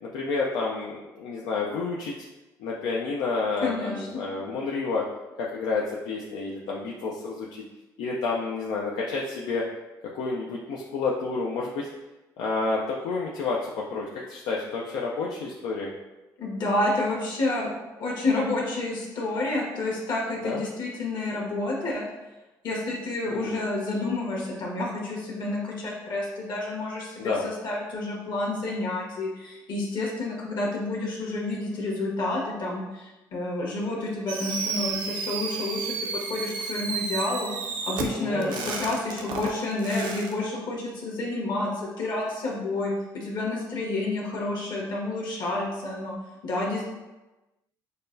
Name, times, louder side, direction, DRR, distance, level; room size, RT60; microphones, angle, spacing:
voice 1, 0.0-2.1 2.6-5.0 5.4-7.6 8.0-9.6 10.1-11.9 12.4-15.9 20.4-20.6 23.3-23.6 27.2-27.4 38.1-38.7, left 4 dB, 90° left, -3 dB, 0.5 m, -30 dB
voice 2, 3.6-4.2 16.4-17.7 18.0-22.0 22.6-37.5 37.8-46.1 46.4-46.8, left 2 dB, 65° left, -3 dB, 1.4 m, -29 dB
Fireworks, 34.3-40.3, right 4 dB, 75° right, 0.6 m, -32 dB
6.5 x 2.2 x 2.6 m, 1.1 s
cardioid pair, 85°, 8 cm